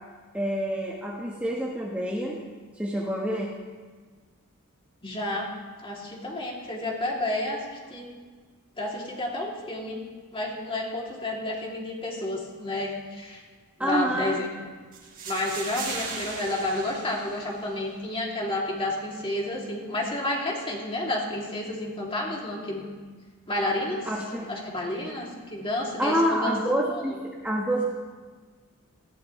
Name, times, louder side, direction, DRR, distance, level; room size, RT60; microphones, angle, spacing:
voice 1, 0.3-2.4 2.8-3.5 13.8-14.4 24.1-24.5 26.0-27.9, equal, 5° right, -3 dB, 1.1 m, -27 dB
voice 2, 5.0-5.5 5.8-7.6 7.9-8.1 8.8-10.0 10.3-13.4 13.8-14.5 15.2-22.8 23.5-24.1 24.5-26.6 26.9-27.0, left 1 dB, 25° left, -2 dB, 2.6 m, -30 dB
sound 1, 14.9-17.9, right 4 dB, 45° right, 3.6 m, -38 dB
19.5 x 15.5 x 3.1 m, 1.5 s
head